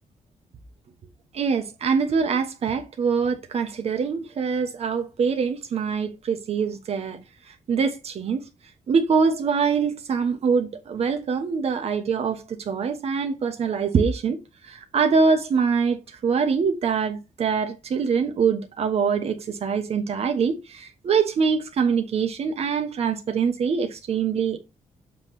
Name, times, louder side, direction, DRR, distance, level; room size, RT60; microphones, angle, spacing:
voice 1, 1.3-7.2 7.5-8.4 8.9-14.4 14.6-24.6, right 5 dB, 55° right, 1.2 m, -24 dB
7.5 x 3.2 x 5.8 m
cardioid pair, 120°, 12 cm